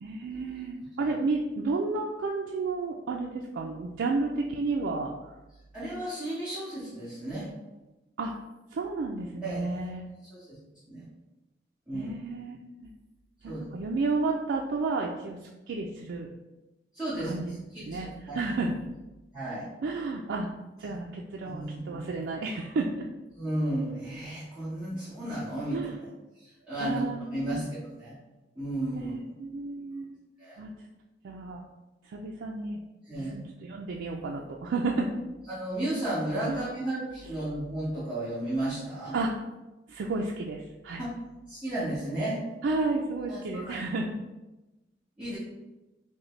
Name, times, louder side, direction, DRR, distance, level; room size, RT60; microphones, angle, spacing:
voice 1, 0.0-5.1 8.2-8.3 8.7-10.1 11.9-12.6 13.4-15.4 15.7-16.3 17.2-17.6 17.9-18.1 18.3-18.7 19.8-20.5 20.8-23.0 25.7-26.0 26.8-27.6 28.9-30.1 30.6-30.7 31.2-31.6 32.1-32.8 33.2-35.1 36.5-36.6 39.1-39.3 39.9-41.0 42.6-44.1, right 3 dB, 90° right, 0 dB, 0.4 m, -31 dB
voice 2, 5.7-7.5 9.4-9.7 10.3-10.6 10.9-11.0 11.9-12.1 13.4-13.6 16.9-18.4 19.3-19.7 21.4-22.0 23.4-25.8 26.4-28.2 28.6-29.1 30.4-30.6 33.1-33.4 35.5-39.1 41.0-41.1 41.5-42.4 43.3-43.7 45.2-45.4, right 1 dB, 5° right, -14 dB, 1.1 m, -33 dB
5.1 x 2.1 x 3.1 m, 1.0 s
head